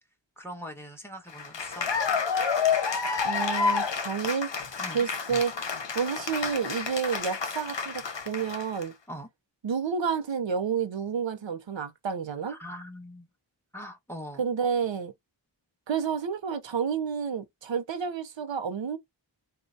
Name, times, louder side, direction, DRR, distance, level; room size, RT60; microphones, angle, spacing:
voice 1, 0.4-1.9 4.8-5.1 9.1-9.3 12.5-13.3 13.7-14.4, equal, 5° left, 1.5 m, -41 dB
Cheering / Applause, 1.3-8.8, left 5 dB, 75° left, 0.9 m, -29 dB
voice 2, 3.2-4.5 4.9-5.5 5.9-8.9 9.6-12.6 14.4-15.1 15.9-19.0, right 6 dB, 85° right, 0.7 m, -30 dB
3.8 x 2.2 x 2.6 m
wide cardioid pair, 45°, 44 cm